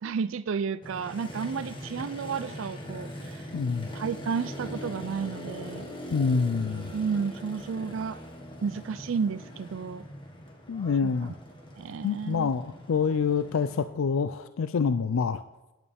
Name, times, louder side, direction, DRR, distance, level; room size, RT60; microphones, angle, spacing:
voice 1, 0.0-3.5 3.9-5.9 6.9-8.2 8.6-10.0 11.0-11.1 11.8-12.5, right 6 dB, 70° right, 14 dB, 0.4 m, -32 dB
Motorcycle, 0.8-13.8, equal, 25° left, 1.7 m, -41 dB
voice 2, 3.5-3.9 6.1-6.9 10.7-11.3 12.0-15.4, left 5 dB, 80° left, 12 dB, 0.4 m, -26 dB
17.0 x 9.3 x 3.5 m, 1.1 s
head